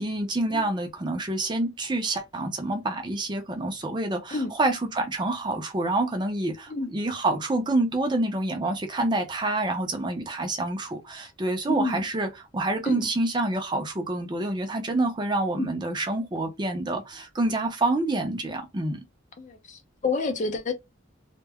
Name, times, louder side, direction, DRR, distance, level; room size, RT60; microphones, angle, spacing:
voice 1, 0.0-19.0, right 2 dB, 20° right, 0.4 m, -27 dB
voice 2, 11.7-12.0 12.9-13.1 15.6-15.7 19.4-20.7, left 3 dB, 40° left, 0.5 m, -29 dB
2.2 x 2.1 x 3.4 m
head